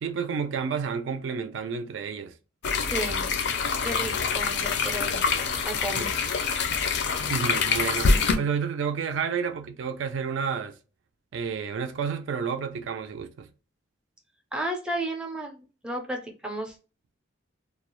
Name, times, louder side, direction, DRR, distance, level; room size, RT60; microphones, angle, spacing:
voice 1, 0.0-2.3 6.0-6.1 7.3-10.8 11.3-13.5, right 6 dB, 70° right, 0.3 m, -30 dB
sound 1, 2.6-8.4, left 5 dB, 60° left, 0.4 m, -25 dB
voice 2, 2.8-3.2 3.8-5.3 5.6-6.2 14.5-16.8, right 1 dB, 5° right, 0.5 m, -33 dB
2.3 x 2.0 x 2.9 m
head